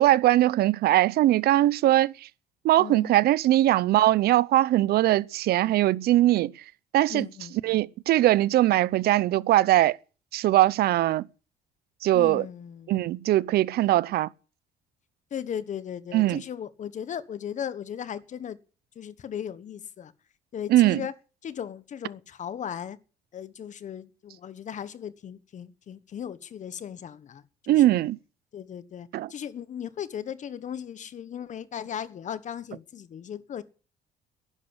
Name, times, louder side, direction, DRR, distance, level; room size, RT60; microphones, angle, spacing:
voice 1, 0.0-2.1 2.6-6.5 6.9-7.3 7.6-10.0 10.3-11.3 12.0-12.4 12.9-14.3 16.1-16.4 20.7-21.0 27.7-28.2 29.1-29.3, right 15 dB, 65° right, 0.7 m, -21 dB
voice 2, 2.8-3.2 7.1-7.8 12.1-13.0 15.3-18.6 18.9-20.1 20.5-21.1 21.4-23.0 23.3-28.0 28.5-33.6, left 9 dB, 45° left, 1.3 m, -37 dB
11.0 x 11.0 x 9.9 m
cardioid pair, 110°, 17 cm